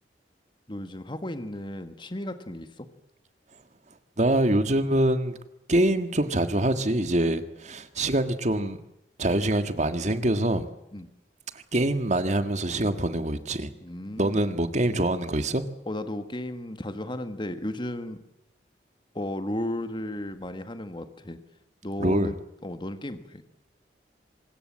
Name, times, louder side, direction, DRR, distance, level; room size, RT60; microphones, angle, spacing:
voice 1, 0.7-2.9 10.9-11.1 13.8-14.4 15.9-18.2 19.1-21.4 21.8-22.3 22.6-23.4, left 1 dB, 25° left, 9 dB, 1.6 m, -34 dB
voice 2, 4.2-5.3 5.7-8.8 9.2-10.7 11.7-13.7 14.2-15.6 22.0-22.3, right 1 dB, 40° right, 10 dB, 1.7 m, -24 dB
25.0 x 20.5 x 7.5 m, 0.86 s
head